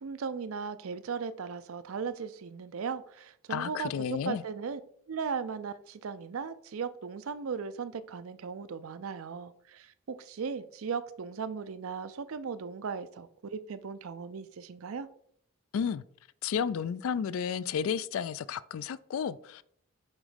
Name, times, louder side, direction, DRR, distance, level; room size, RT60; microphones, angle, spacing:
voice 1, 0.0-4.8 5.1-15.1, right 6 dB, 75° right, 0.5 m, -37 dB
voice 2, 3.5-4.4 15.7-16.0 16.4-19.6, left 7 dB, 70° left, 0.3 m, -32 dB
7.3 x 3.1 x 5.1 m
head